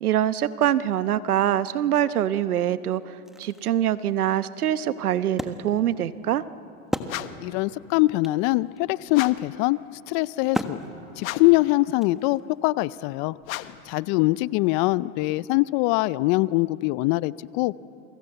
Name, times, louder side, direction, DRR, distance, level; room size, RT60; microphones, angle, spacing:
voice 1, 0.0-6.4, right 11 dB, 85° right, 15 dB, 1.0 m, -24 dB
Wood, 3.0-7.7 8.0-8.1 8.2-12.6, equal, ahead, 1.3 m, -36 dB
sound 1, 7.1-7.5 9.1-9.6 11.2-11.7 13.4-13.9, left 15 dB, 65° left, 1.2 m, -35 dB
voice 2, 7.4-9.8 10.1-10.8 11.2-13.4 13.9-17.7, left 20 dB, 40° left, 20 dB, 0.5 m, -23 dB
29.5 x 24.0 x 8.0 m, 2.9 s
hypercardioid pair, 110°, 43 cm